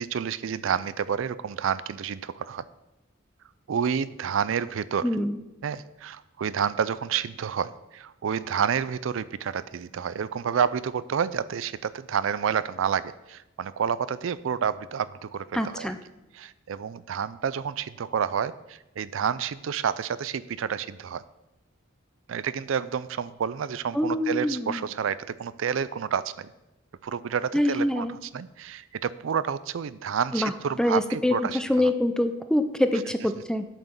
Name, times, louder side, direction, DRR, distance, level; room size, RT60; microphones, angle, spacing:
voice 1, 0.0-2.6 3.7-5.1 5.6-15.9 16.3-21.2 22.3-26.5 27.0-31.9, right 7 dB, 75° right, 16 dB, 0.4 m, -29 dB
voice 2, 5.0-5.4 15.5-16.0 23.9-24.8 27.5-28.2 30.3-30.5 30.8-33.7, left 1 dB, 5° left, 9 dB, 0.5 m, -25 dB
9.0 x 5.9 x 6.7 m, 0.96 s
head